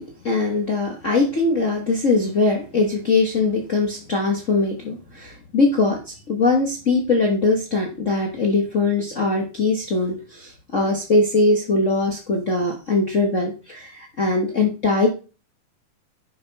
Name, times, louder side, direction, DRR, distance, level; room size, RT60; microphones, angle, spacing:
voice 1, 0.0-15.1, left 3 dB, 90° left, 1 dB, 0.6 m, -21 dB
10.5 x 5.7 x 4.1 m, 0.33 s
omnidirectional pair, 3.7 m